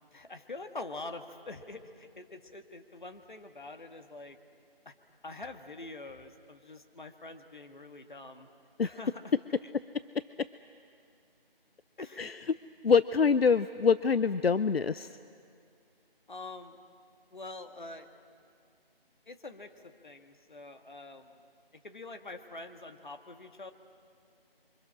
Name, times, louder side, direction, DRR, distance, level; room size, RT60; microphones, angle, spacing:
voice 1, 0.1-4.4 4.8-4.9 5.2-8.5 8.8-9.3 12.0-12.3 16.3-16.8 17.3-18.1 19.3-21.4 21.7-23.7, left 2 dB, 55° left, 6 dB, 1.7 m, -45 dB
voice 2, 12.2-12.6 12.8-15.2, left 5 dB, 80° left, 15 dB, 0.6 m, -25 dB
30.0 x 24.5 x 6.3 m, 2.4 s
figure-of-eight pair, 165°, 30 cm